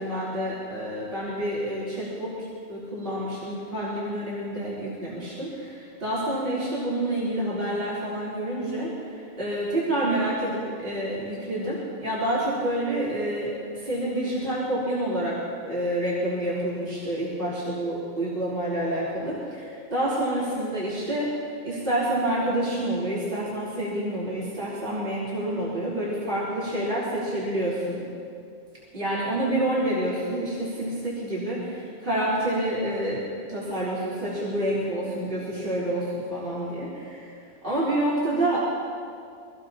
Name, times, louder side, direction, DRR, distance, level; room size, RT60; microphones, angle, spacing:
voice 1, 0.0-2.3 2.7-8.9 9.2-15.4 15.6-21.3 21.6-28.0 28.9-33.2 33.5-37.3 37.6-38.6, right 1 dB, 40° right, -10 dB, 4.1 m, -28 dB
24.0 x 19.0 x 3.0 m, 2.4 s
omnidirectional pair, 1.4 m